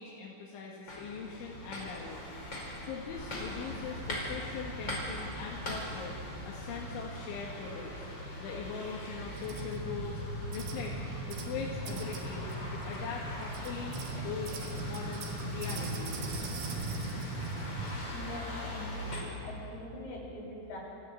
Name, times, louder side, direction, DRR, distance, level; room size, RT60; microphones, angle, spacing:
voice 1, 0.0-2.2 2.8-6.2 6.4-8.1 8.4-10.2 10.5-10.9 11.3-12.4 12.7-14.0 14.2-14.5 14.8-16.3, left 5 dB, 85° left, -3 dB, 4.4 m, -41 dB
sound 1, 0.9-19.2, left 1 dB, 25° left, 5.3 m, -41 dB
sound 2, 9.3-18.0, right 2 dB, 80° right, 4.7 m, -38 dB
voice 2, 18.1-20.8, left 2 dB, 60° left, -4 dB, 8.7 m, -43 dB
26.0 x 16.5 x 9.2 m, 2.9 s
omnidirectional pair, 5.3 m